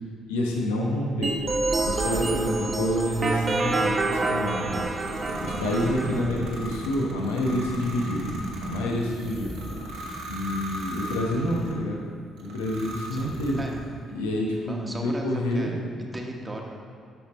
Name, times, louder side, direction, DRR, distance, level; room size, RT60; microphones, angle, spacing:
voice 1, 0.3-1.4 1.8-4.8 5.4-8.2 8.6-9.5 10.3-12.0 12.4-13.7 14.1-15.7, left 1 dB, 80° left, -2 dB, 1.0 m, -28 dB
sound 1, 1.2-6.2, right 3 dB, 35° right, 0.7 m, -27 dB
sound 2, 1.5-11.8 12.4-14.0, right 1 dB, 70° right, 1.1 m, -37 dB
sound 3, 8.9-10.4, left 2 dB, 20° left, 2.0 m, -41 dB
voice 2, 13.1-13.8 14.7-15.8 16.1-16.8, right 1 dB, 20° right, 0 dB, 1.2 m, -36 dB
8.3 x 5.7 x 4.2 m, 2.2 s
hypercardioid pair, 45°, 0 cm